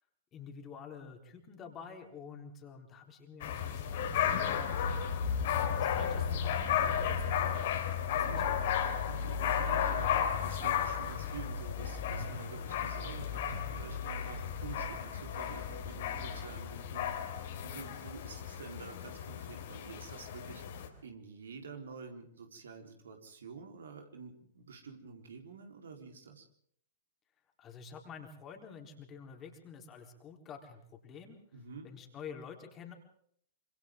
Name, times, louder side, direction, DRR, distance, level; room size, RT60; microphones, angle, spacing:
voice 1, 0.3-4.8 5.6-7.7 8.1-8.7 27.6-31.4 31.8-32.9, left 6 dB, 25° left, 3 dB, 4.0 m, -49 dB
sound 1, 3.4-20.9, left 8 dB, 50° left, 3.7 m, -34 dB
voice 2, 8.0-8.4 9.1-20.6 21.0-26.5 31.5-31.9, right 5 dB, 65° right, 3 dB, 4.0 m, -49 dB
27.5 x 26.0 x 3.8 m, 0.66 s
figure-of-eight pair, 105°, 0 cm